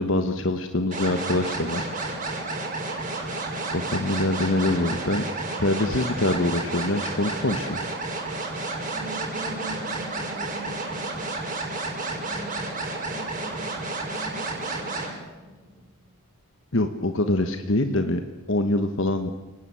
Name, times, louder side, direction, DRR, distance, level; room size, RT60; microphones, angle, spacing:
voice 1, 0.0-1.9 3.7-5.2 5.6-7.8 16.7-18.2 18.5-19.3, left 2 dB, 60° left, 7 dB, 1.3 m, -24 dB
sound 1, 0.9-15.1, right 2 dB, 35° right, 6.7 m, -31 dB
voice 2, 8.9-11.3 12.2-12.6 13.1-15.9, right 1 dB, 15° left, -1 dB, 7.5 m, -42 dB
30.0 x 19.0 x 8.5 m, 1.2 s
head